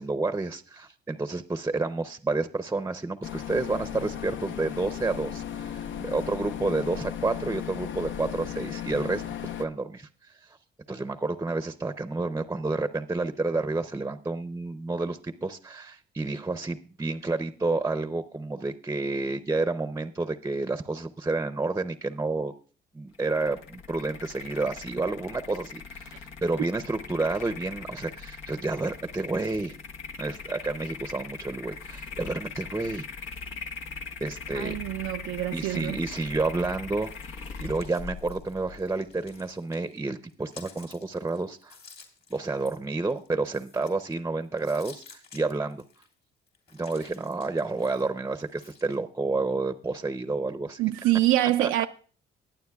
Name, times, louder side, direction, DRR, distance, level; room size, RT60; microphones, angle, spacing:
voice 1, 0.0-9.2 9.6-10.1 10.9-22.5 22.9-29.8 30.2-33.1 34.2-34.8 35.5-37.1 37.6-41.8 42.3-45.8 46.7-50.8 51.6-51.7, right 3 dB, 15° right, 0.6 m, -30 dB
sound 1, 3.2-9.7, left 10 dB, 70° left, 0.7 m, -36 dB
sound 2, 23.1-39.5, left 5 dB, 85° left, 1.2 m, -41 dB
voice 2, 34.5-36.0 50.8-51.9, right 15 dB, 90° right, 0.4 m, -25 dB
sound 3, 37.0-40.0 40.3-44.1 44.5-46.1 46.5-49.0, left 5 dB, 55° left, 3.0 m, -52 dB
21.5 x 8.9 x 2.3 m
cardioid pair, 90°, 20 cm